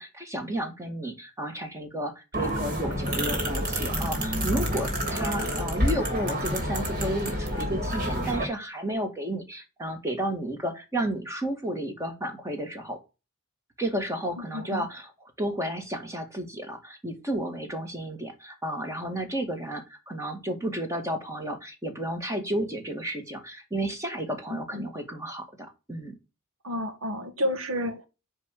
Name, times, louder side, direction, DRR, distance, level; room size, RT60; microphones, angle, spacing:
voice 1, 0.0-13.0 13.8-15.1 15.4-26.1, right 1 dB, 15° right, 1.9 m, -32 dB
sound 1, 2.3-8.4, equal, 40° right, 3.1 m, -28 dB
voice 2, 14.4-14.9 24.5-24.9 26.6-28.1, left 1 dB, 85° right, 1.6 m, -31 dB
10.0 x 3.5 x 6.6 m
head